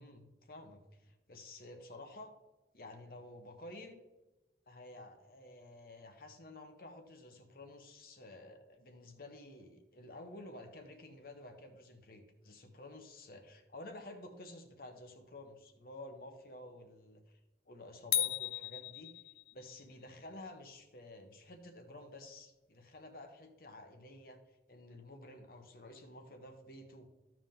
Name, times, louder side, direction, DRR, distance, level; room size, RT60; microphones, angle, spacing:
voice 1, 0.0-2.3 2.7-4.0 4.7-17.2 17.7-19.1 19.5-24.4 24.7-27.1, left 1 dB, 55° left, 5 dB, 1.1 m, -51 dB
sound 1, 18.1-19.7, left 11 dB, 75° left, 0.5 m, -35 dB
14.0 x 4.9 x 3.7 m, 1.1 s
head